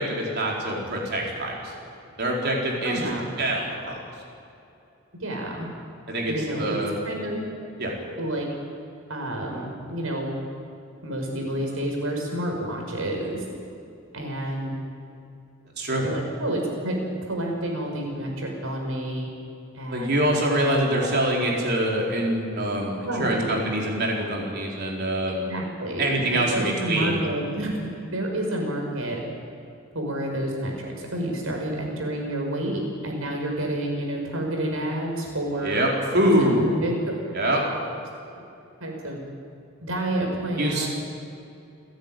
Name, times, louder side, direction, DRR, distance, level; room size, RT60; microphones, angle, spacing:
voice 1, 0.0-1.7 2.2-3.0 3.4-4.0 6.1-6.9 7.8-7.9 15.8-16.0 19.9-25.5 26.0-27.2 35.6-36.8 37.3-37.6 40.6-40.9, right 1 dB, 50° right, -2 dB, 4.4 m, -25 dB
voice 2, 2.8-3.5 5.2-5.7 6.3-6.8 7.0-7.4 8.2-8.5 9.1-10.3 11.0-13.4 14.1-14.7 16.0-16.9 17.3-19.3 19.7-21.1 23.0-23.5 25.3-26.1 26.5-29.2 29.9-35.8 36.2-36.9 38.8-39.2 39.8-40.9, right 1 dB, 80° right, 1 dB, 5.6 m, -29 dB
30.0 x 10.5 x 9.2 m, 2.7 s
head